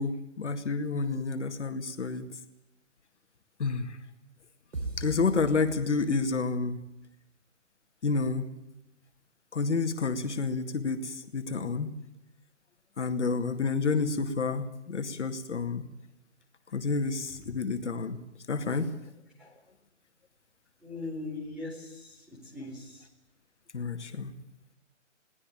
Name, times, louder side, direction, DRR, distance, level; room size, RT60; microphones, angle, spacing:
voice 1, 0.0-2.3 3.6-4.0 5.0-6.8 8.0-8.5 9.5-11.9 13.0-15.8 16.7-18.2 18.5-18.9 23.7-24.3, left 4 dB, 65° left, 7 dB, 2.3 m, -29 dB
sound 1, 4.7-6.6, right 2 dB, 85° right, 4.8 m, -39 dB
voice 2, 20.8-23.1, left 2 dB, ahead, -4 dB, 3.9 m, -40 dB
22.5 x 18.0 x 8.8 m, 0.88 s
hypercardioid pair, 180°, 38 cm